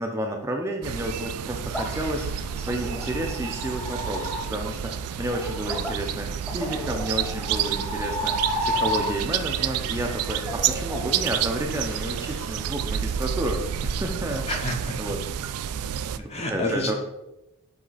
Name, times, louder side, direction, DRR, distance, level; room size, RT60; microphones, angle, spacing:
voice 1, 0.0-6.3 6.5-8.3 8.6-14.4 15.0-15.2 16.2-16.9, right 1 dB, 10° right, 2 dB, 0.5 m, -31 dB
sound 1, 0.8-16.2, right 9 dB, 85° right, 0.3 m, -30 dB
sound 2, 1.7-9.5 9.8-12.7, left 1 dB, 5° left, 1.1 m, -33 dB
voice 2, 14.5-15.0 16.3-16.9, left 1 dB, 30° left, 2 dB, 0.9 m, -28 dB
7.7 x 3.2 x 4.0 m, 0.95 s
head